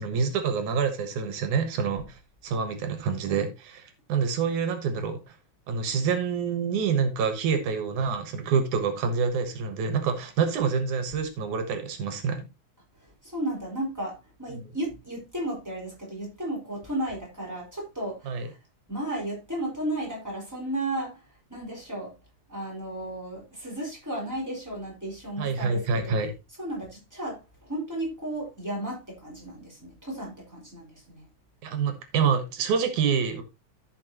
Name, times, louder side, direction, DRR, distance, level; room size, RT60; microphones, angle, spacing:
voice 1, 0.0-5.3 5.7-12.5 18.3-18.5 25.4-26.3 31.6-33.4, right 6 dB, 85° right, 2.8 m, -27 dB
voice 2, 13.0-18.6 18.9-21.2 21.5-22.2 22.5-26.2 26.6-31.3, right 1 dB, 5° right, 4.7 m, -34 dB
14.5 x 5.9 x 2.9 m
omnidirectional pair, 3.4 m